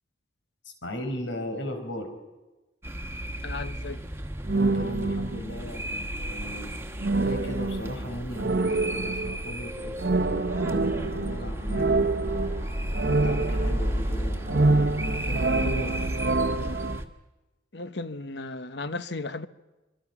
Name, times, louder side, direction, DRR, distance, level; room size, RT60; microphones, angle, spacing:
voice 1, 0.8-2.1 4.5-6.7 7.2-12.5 13.0-16.1, left 1 dB, 80° left, 5.0 m, -37 dB
sound 1, 2.8-17.1, equal, 15° right, 1.4 m, -33 dB
voice 2, 3.4-4.0 17.7-19.5, left 3 dB, 65° left, 1.0 m, -35 dB
sound 2, 4.5-5.7 7.0-9.5 10.0-14.1 14.4-17.0, right 3 dB, 60° right, 0.8 m, -27 dB
sound 3, 10.3-16.1, left 1 dB, 40° left, 6.5 m, -50 dB
26.0 x 24.5 x 6.1 m
head